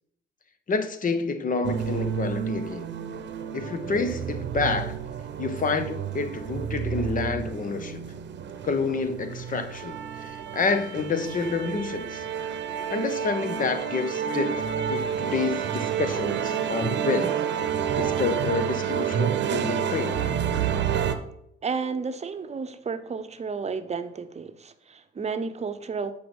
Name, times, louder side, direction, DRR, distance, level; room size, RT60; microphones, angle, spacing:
voice 1, 0.7-2.9 3.5-5.0 5.4-8.0 8.6-12.2 12.9-17.3 18.0-20.3, left 4 dB, 45° left, 1.0 m, -28 dB
sound 1, 1.6-21.2, right 8 dB, 60° right, 0.8 m, -29 dB
voice 2, 21.6-26.1, right 5 dB, 35° right, 0.8 m, -32 dB
7.7 x 5.3 x 5.4 m
cardioid pair, 90°, 20 cm